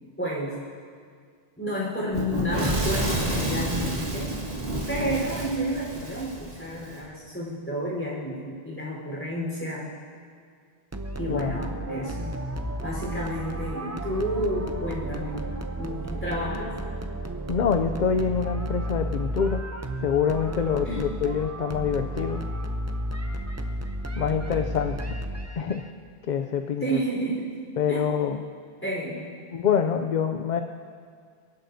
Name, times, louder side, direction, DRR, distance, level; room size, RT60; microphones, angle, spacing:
voice 1, 0.2-0.6 1.6-4.3 4.9-9.9 11.2-12.4 12.8-15.4 15.8-16.8 20.8-21.0 26.8-27.5 27.9-28.1 28.8-29.3, equal, 10° left, -5 dB, 4.2 m, -30 dB
Fire / Explosion, 2.1-7.0, right 1 dB, 85° right, 2.5 m, -29 dB
sound 1, 10.9-25.8, right 1 dB, 20° right, 0.5 m, -33 dB
voice 2, 17.5-19.6 20.0-22.4 24.2-25.2 25.6-25.9 26.3-27.0 27.8-28.4 29.5-30.6, left 7 dB, 55° left, 7 dB, 0.6 m, -26 dB
25.0 x 11.0 x 2.7 m, 2.1 s
omnidirectional pair, 1.0 m